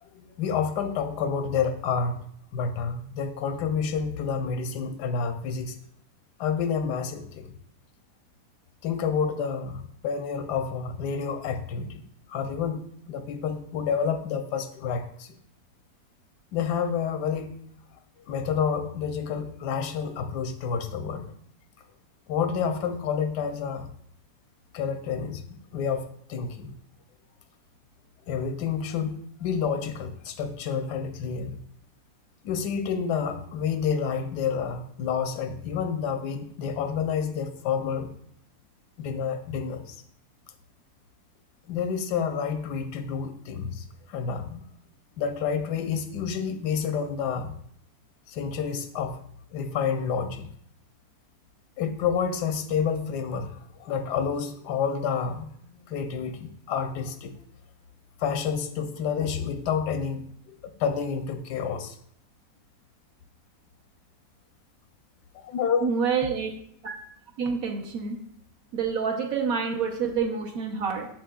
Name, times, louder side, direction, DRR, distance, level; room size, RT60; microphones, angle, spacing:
voice 1, 0.0-2.2 2.5-5.8 6.4-7.6 8.8-12.0 12.3-15.4 16.5-17.5 18.3-21.3 22.3-23.9 24.7-26.7 28.3-31.6 32.4-38.1 39.0-40.0 41.7-44.6 45.2-47.5 48.3-49.2 49.5-50.5 51.8-57.3 58.2-62.0 65.3-65.8, left 6 dB, 80° left, 8 dB, 1.2 m, -29 dB
voice 2, 65.8-66.5 66.8-66.9 67.4-68.2 68.7-71.1, right 6 dB, 65° right, 3 dB, 1.2 m, -27 dB
7.5 x 6.7 x 2.3 m, 0.66 s
omnidirectional pair, 1.8 m